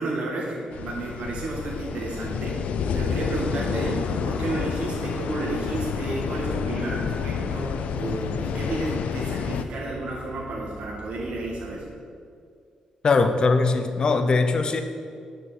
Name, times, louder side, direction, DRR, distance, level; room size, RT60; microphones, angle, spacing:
voice 1, 0.0-11.9, right 2 dB, 60° right, -4 dB, 1.7 m, -31 dB
sound 1, 0.7-9.7, left 6 dB, 80° left, 0.5 m, -29 dB
sound 2, 1.5-11.7, right 3 dB, 15° right, 1.4 m, -44 dB
voice 2, 13.0-14.8, left 3 dB, 40° left, 8 dB, 0.7 m, -21 dB
9.7 x 5.2 x 7.7 m, 2.2 s
wide cardioid pair, 145°, 2 cm